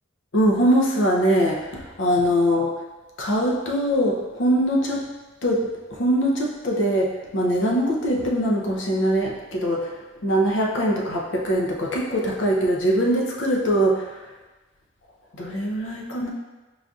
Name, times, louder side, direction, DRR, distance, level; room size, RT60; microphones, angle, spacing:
voice 1, 0.3-2.7 3.2-5.0 5.4-5.6 5.9-10.0 10.2-14.1 15.3-16.3, equal, 80° left, -1 dB, 0.6 m, -22 dB
4.8 x 2.6 x 2.4 m, 1.2 s
head